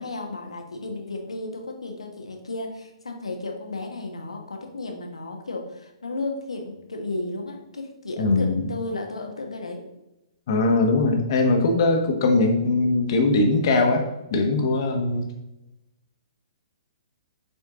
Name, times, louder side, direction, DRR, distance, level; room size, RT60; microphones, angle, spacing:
voice 1, 0.0-9.8, left 2 dB, 80° left, 3 dB, 1.4 m, -33 dB
voice 2, 8.2-8.7 10.5-15.2, left 2 dB, 50° left, 3 dB, 1.4 m, -21 dB
7.0 x 4.4 x 3.7 m, 0.93 s
figure-of-eight pair, 120°, 3 cm